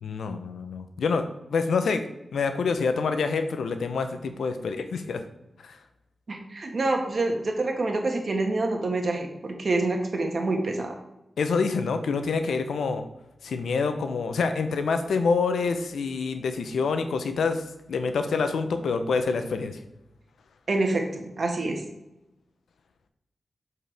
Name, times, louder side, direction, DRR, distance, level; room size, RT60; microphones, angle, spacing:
voice 1, 0.0-1.2 1.5-2.0 2.3-5.2 5.6-5.8 11.4-13.0 13.4-17.6 17.9-19.8, left 4 dB, 90° left, 8 dB, 0.6 m, -26 dB
voice 2, 6.3-10.9 20.7-21.8, right 2 dB, 60° right, 2 dB, 1.4 m, -27 dB
7.6 x 4.7 x 3.4 m, 0.90 s
cardioid pair, 45°, 0 cm